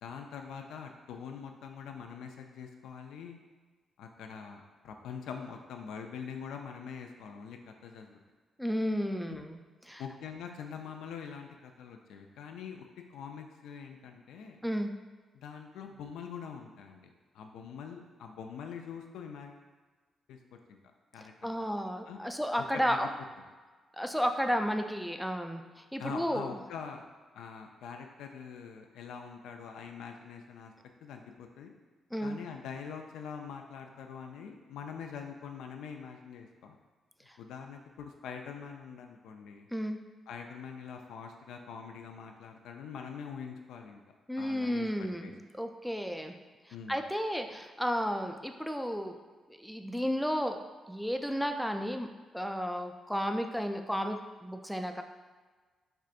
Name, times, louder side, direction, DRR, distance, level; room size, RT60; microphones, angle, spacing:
voice 1, 0.0-3.4 4.0-8.2 10.0-12.8 13.1-14.6 15.3-17.1 17.3-19.6 20.3-20.4 20.7-20.8 21.1-21.3 22.1-22.2 22.7-23.0 26.0-27.0 27.3-30.7 31.0-31.7 32.2-36.8 37.4-39.7 40.3-44.0 44.4-45.3 46.7-47.0, left 6 dB, 85° left, 4 dB, 0.3 m, -44 dB
voice 2, 8.6-9.6 9.9-10.0 14.6-14.9 21.4-23.1 24.0-26.5 32.1-32.4 37.3-37.4 39.7-40.0 44.3-46.3 46.7-49.2 49.5-50.6 50.9-52.1 52.3-55.0, equal, ahead, 5 dB, 0.3 m, -33 dB
4.4 x 2.6 x 2.4 m, 1.4 s
cardioid pair, 65°, 0 cm